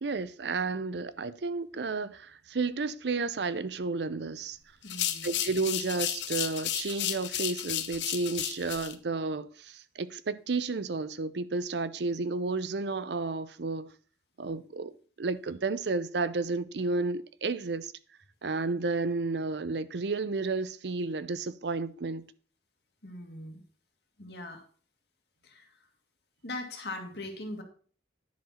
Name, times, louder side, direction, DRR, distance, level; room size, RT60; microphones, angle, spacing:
voice 1, 0.0-4.6 5.2-13.9 14.4-14.9 15.2-17.9 18.4-22.2, right 3 dB, 75° right, 0.6 m, -32 dB
sound 1, 4.8-8.9, left 11 dB, 85° left, 0.9 m, -33 dB
voice 2, 4.8-5.4 23.0-23.6 24.2-24.6 25.4-25.7 26.4-27.6, left 2 dB, 65° left, 2.0 m, -40 dB
10.5 x 4.9 x 5.7 m
head